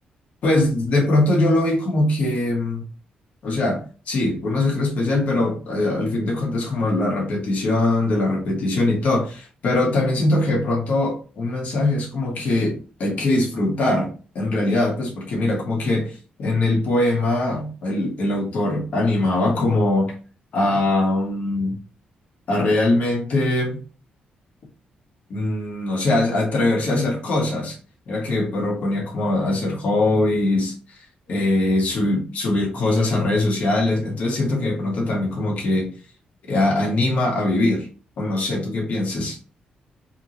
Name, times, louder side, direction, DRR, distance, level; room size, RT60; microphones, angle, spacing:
voice 1, 0.4-2.8 3.4-20.1 20.5-21.7 22.5-23.8 25.3-27.8 28.1-30.7 31.3-35.9 36.5-37.9 38.2-39.4, left 2 dB, 60° left, -2 dB, 1.4 m, -22 dB
3.6 x 2.8 x 3.0 m, 0.36 s
wide cardioid pair, 160°, 3 cm